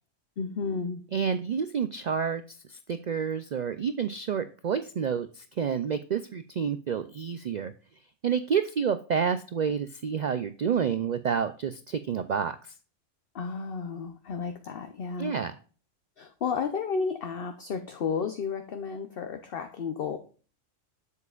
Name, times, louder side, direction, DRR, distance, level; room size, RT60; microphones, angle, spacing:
voice 1, 0.4-1.0 13.3-15.3 16.2-20.2, left 5 dB, 55° left, 7 dB, 0.8 m, -32 dB
voice 2, 1.1-2.4 2.7-7.7 8.2-12.6 15.2-15.5, right 7 dB, 70° right, 11 dB, 0.4 m, -29 dB
8.0 x 7.3 x 2.4 m, 0.38 s
omnidirectional pair, 1.3 m